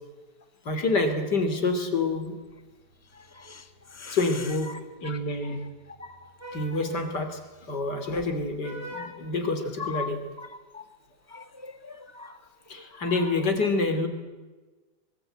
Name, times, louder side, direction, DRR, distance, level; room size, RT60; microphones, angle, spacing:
voice 1, 0.6-2.4 4.1-4.7 5.0-5.6 6.5-7.4 7.7-10.2 12.7-14.1, left 3 dB, 80° left, 7 dB, 3.4 m, -27 dB
Vehicle horn car horn honking, 2.2-10.2, equal, 65° right, 7.1 m, -49 dB
voice 2, 3.1-4.2 4.7-4.8 5.0-5.2 6.0-6.6 8.9-9.1 9.8-10.1 10.4-10.5 10.7-10.8 11.3-12.4 12.9-13.2, left 5 dB, 10° right, 9 dB, 1.0 m, -40 dB
24.0 x 22.0 x 9.0 m, 1.3 s
omnidirectional pair, 1.8 m